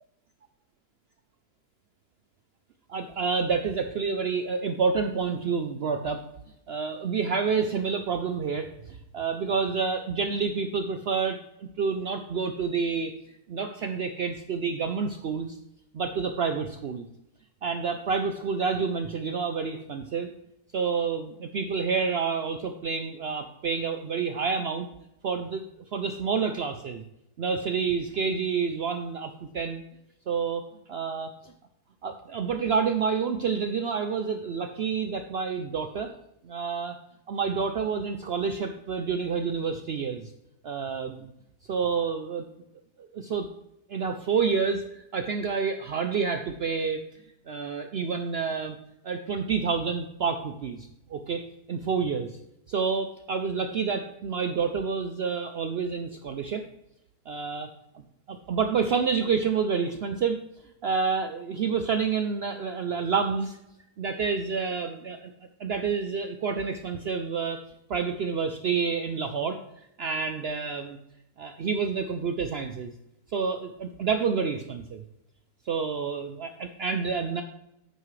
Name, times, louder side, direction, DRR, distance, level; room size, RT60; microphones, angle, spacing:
voice 1, 2.9-6.2 6.7-8.7 9.1-13.1 13.5-15.6 15.9-17.1 17.6-20.3 20.7-24.9 25.2-25.6 25.9-27.0 27.4-29.8 30.3-30.6 30.9-31.5 32.0-36.1 36.4-37.0 37.3-40.3 40.6-41.3 41.7-42.5 43.1-43.5 43.9-47.0 47.5-48.8 49.0-52.4 52.7-56.6 57.3-57.7 58.3-60.4 60.8-63.6 64.0-65.3 65.6-67.6 67.9-69.6 70.0-71.0 71.4-72.9 73.3-75.0 75.7-77.4, right 5 dB, 75° right, 7 dB, 0.5 m, -28 dB
9.6 x 8.2 x 3.2 m, 0.84 s
omnidirectional pair, 1.7 m